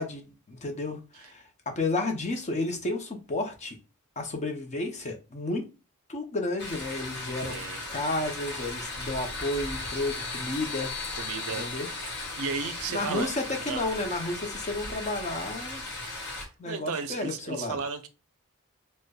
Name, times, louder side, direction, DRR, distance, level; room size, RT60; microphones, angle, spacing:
voice 1, 0.0-3.8 4.2-5.7 6.1-7.6 7.9-10.9 11.6-11.9 12.9-15.8 16.6-17.8, left 2 dB, 30° left, 0.6 m, -32 dB
sound 1, 6.6-16.5, left 2 dB, 50° left, 1.1 m, -37 dB
voice 2, 7.4-7.8 11.2-11.7 12.4-13.4 13.6-13.9 16.7-18.1, right 5 dB, 65° right, 0.4 m, -34 dB
sound 2, 8.1-13.6, left 8 dB, 25° right, 1.2 m, -43 dB
5.0 x 2.1 x 2.2 m
head